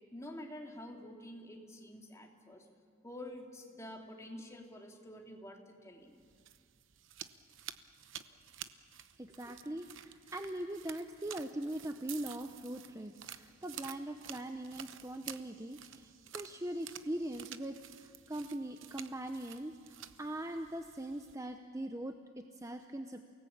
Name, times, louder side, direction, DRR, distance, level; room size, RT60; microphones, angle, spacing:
voice 1, 0.1-2.6 3.0-6.1, left 1 dB, 15° left, 1 dB, 2.6 m, -48 dB
sound 1, 6.1-21.4, right 10 dB, 55° right, 0.9 m, -51 dB
voice 2, 9.2-23.3, right 1 dB, 15° right, 6 dB, 0.8 m, -41 dB
29.0 x 18.5 x 8.7 m, 2.1 s
head